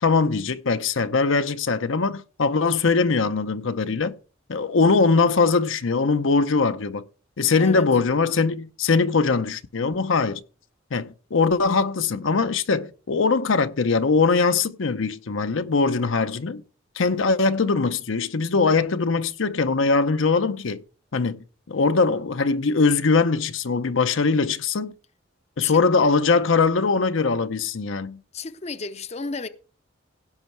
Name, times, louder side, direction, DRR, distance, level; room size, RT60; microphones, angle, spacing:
voice 1, 0.0-4.1 4.5-7.0 7.4-10.4 10.9-16.6 17.0-20.8 21.1-21.4 21.7-24.9 25.6-28.2, left 4 dB, 80° left, 0.7 m, -21 dB
voice 2, 7.6-7.9 25.6-25.8 28.3-29.5, left 3 dB, 35° left, 0.5 m, -33 dB
16.0 x 5.6 x 4.6 m
head